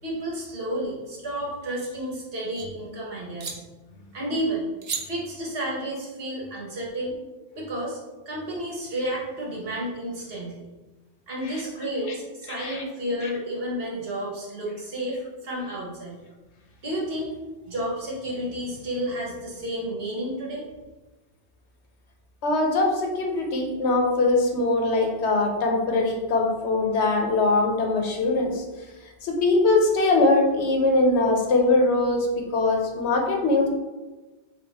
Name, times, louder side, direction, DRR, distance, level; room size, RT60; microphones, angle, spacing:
voice 1, 0.0-3.6 4.1-4.7 5.0-7.1 7.5-8.0 8.2-10.6 11.3-16.2 16.8-17.3 17.7-20.7, right 1 dB, 60° right, -3 dB, 1.4 m, -31 dB
sound 1, 1.5-2.7 3.4-3.6 4.8-5.0, right 6 dB, 80° right, 1.0 m, -35 dB
voice 2, 12.5-12.8 22.4-28.6 29.2-32.3 32.5-33.7, left 2 dB, 75° left, 2 dB, 1.1 m, -22 dB
6.4 x 2.4 x 3.4 m, 1.2 s
omnidirectional pair, 1.2 m